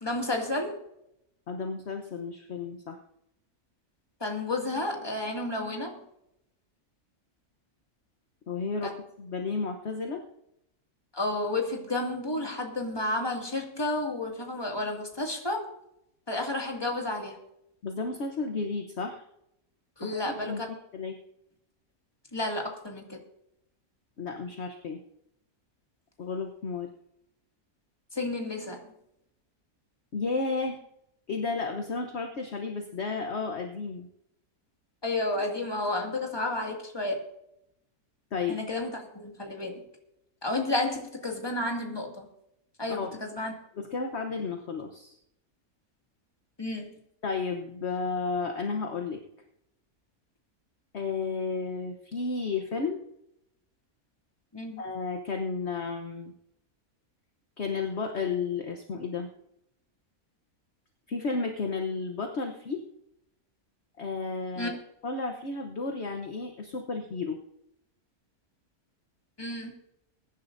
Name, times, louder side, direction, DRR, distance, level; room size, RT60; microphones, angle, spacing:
voice 1, 0.0-0.8 4.2-6.0 8.8-8.9 11.1-15.6 16.3-17.4 20.0-20.7 22.3-23.2 28.1-28.8 35.0-37.2 38.5-39.8 40.4-42.3 42.8-43.5 46.6-46.9 54.5-54.8 64.6-64.7 69.4-69.7, left 2 dB, 15° left, 1 dB, 2.2 m, -31 dB
voice 2, 1.5-3.0 8.5-10.2 17.8-19.2 20.0-20.6 20.9-21.2 24.2-25.0 26.2-26.9 30.1-30.8 31.3-34.1 38.3-38.6 42.9-43.1 43.7-45.2 47.2-49.2 50.9-53.0 54.8-56.3 57.6-59.3 61.1-62.8 64.0-64.8 65.0-67.4, left 4 dB, 50° left, 4 dB, 1.2 m, -32 dB
22.0 x 10.5 x 2.6 m, 0.80 s
omnidirectional pair, 1.6 m